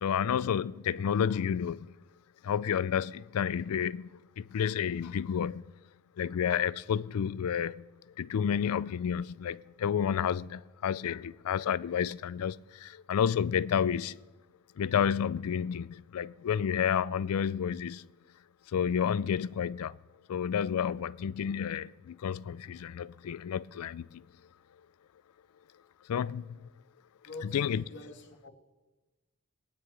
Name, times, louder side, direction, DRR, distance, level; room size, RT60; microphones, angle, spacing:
voice 1, 0.0-1.9 2.4-5.7 6.2-7.9 8.2-14.2 14.8-18.1 18.7-20.0 20.3-24.2 26.1-26.7 27.5-27.8, left 8 dB, 80° left, 0.4 m, -30 dB
voice 2, 27.2-28.5, left 2 dB, 55° left, 2.5 m, -45 dB
22.5 x 9.5 x 3.3 m
head